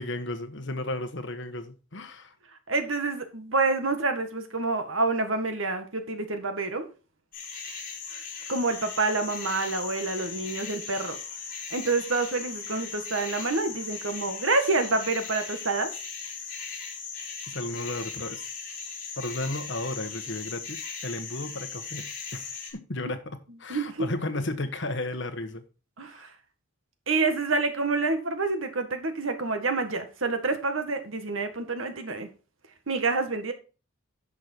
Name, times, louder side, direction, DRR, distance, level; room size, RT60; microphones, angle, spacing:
voice 1, 0.0-2.3 17.5-18.4 19.2-25.6 26.0-26.2, left 2 dB, 60° left, 1.4 m, -34 dB
voice 2, 2.7-6.9 8.5-11.2 11.7-15.9 23.7-24.1 26.0-26.3 27.1-32.3 32.9-33.5, right 3 dB, 75° right, 1.8 m, -27 dB
sound 1, 7.3-22.7, left 5 dB, 45° left, 4.0 m, -38 dB
10.5 x 6.4 x 4.5 m
head